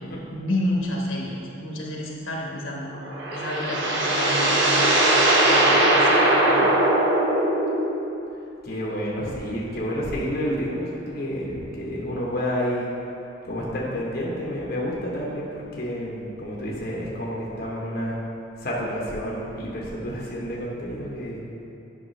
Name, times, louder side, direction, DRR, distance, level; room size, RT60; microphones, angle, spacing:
voice 1, 0.3-2.9 3.3-6.9, left 1 dB, 80° left, -2 dB, 1.2 m, -30 dB
sound 1, 2.9-8.1, right 1 dB, 65° right, 1.0 m, -20 dB
voice 2, 8.6-12.9 13.4-18.2 18.6-21.4, equal, 50° left, -5 dB, 1.0 m, -29 dB
8.8 x 5.8 x 3.2 m, 2.8 s
head